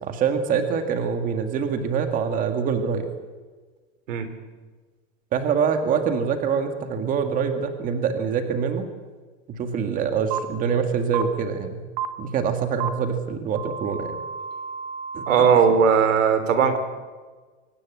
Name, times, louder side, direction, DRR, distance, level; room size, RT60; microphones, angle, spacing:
voice 1, 0.0-3.1 5.3-8.9 9.5-11.8 12.2-14.2 15.1-15.2, right 6 dB, 20° right, 7 dB, 1.9 m, -25 dB
sound 1, 10.3-10.4 11.1-11.2 12.0-12.1 12.8-12.9 13.6-15.7, right 7 dB, 45° right, 1.6 m, -31 dB
voice 2, 15.3-16.8, right 6 dB, 85° right, 10 dB, 3.8 m, -18 dB
24.0 x 18.5 x 8.4 m, 1.4 s
supercardioid pair, 165°, 37 cm